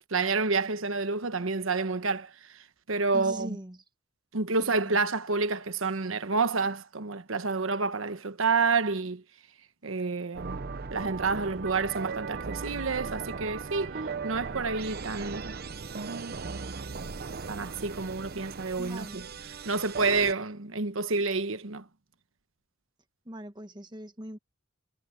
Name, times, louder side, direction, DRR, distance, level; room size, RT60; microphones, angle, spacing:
voice 1, 0.1-2.3 2.9-3.6 4.3-9.2 9.8-10.6 10.9-13.9 14.2-15.5 17.5-19.3 19.6-21.8, right 4 dB, 85° right, 1.2 m, -29 dB
voice 2, 3.1-3.8 4.6-5.0 17.3-17.5 18.3-18.4 18.8-19.2 23.2-24.4, equal, 20° right, 1.5 m, -41 dB
sound 1, 10.3-20.3, right 4 dB, 50° right, 0.8 m, -37 dB
head